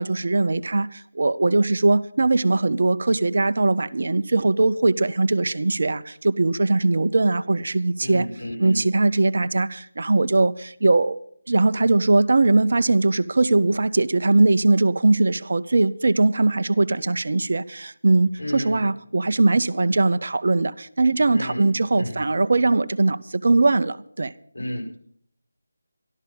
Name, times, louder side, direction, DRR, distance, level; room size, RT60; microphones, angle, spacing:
voice 1, 0.0-8.3 8.6-11.2 11.5-24.3, right 2 dB, 55° right, 0.6 m, -20 dB
voice 2, 8.0-8.8 18.4-18.8 21.3-21.7 22.0-22.2 24.5-25.0, left 1 dB, 65° left, 5.0 m, -32 dB
13.5 x 12.5 x 5.6 m
figure-of-eight pair, 160°, 0 cm